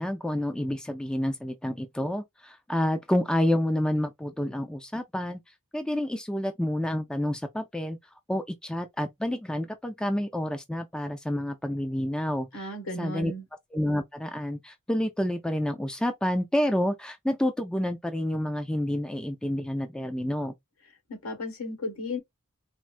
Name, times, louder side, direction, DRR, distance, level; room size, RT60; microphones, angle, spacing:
voice 1, 0.0-5.4 5.7-8.0 8.3-12.7 13.0-13.3 13.7-20.5, left 1 dB, 5° left, 0.3 m, -29 dB
voice 2, 12.5-13.4 21.1-22.2, left 2 dB, 80° left, 1.6 m, -34 dB
4.3 x 2.0 x 2.4 m
head